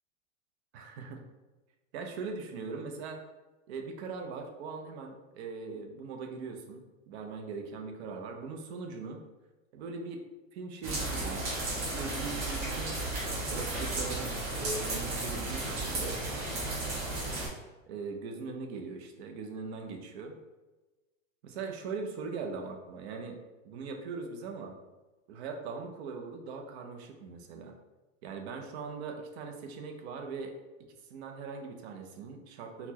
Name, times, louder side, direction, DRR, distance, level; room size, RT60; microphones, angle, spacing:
voice 1, 0.7-1.2 1.9-3.2 3.7-9.2 9.7-10.3 10.5-13.0 13.5-16.2 17.9-20.4 21.4-23.4 23.6-24.8 25.3-27.7 28.2-30.5 31.1-32.9, right 4 dB, 55° right, 3 dB, 0.6 m, -40 dB
sound 1, 10.8-17.5, right 2 dB, 30° right, 1.1 m, -34 dB
4.0 x 2.1 x 2.8 m, 1.2 s
supercardioid pair, 145°, 39 cm